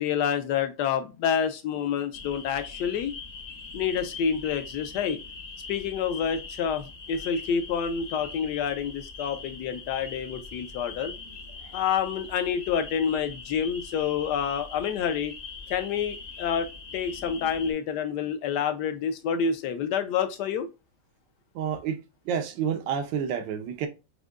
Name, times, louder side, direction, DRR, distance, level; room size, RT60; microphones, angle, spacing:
voice 1, 0.0-3.1 3.7-5.2 5.7-11.1 11.7-15.3 15.7-20.7, left 7 dB, 70° left, 1.2 m, -28 dB
sound 1, 2.1-17.7, left 4 dB, 50° left, 1.1 m, -42 dB
voice 2, 21.5-22.0 22.3-23.9, right 8 dB, 80° right, 1.4 m, -29 dB
6.2 x 2.6 x 2.4 m
omnidirectional pair, 2.0 m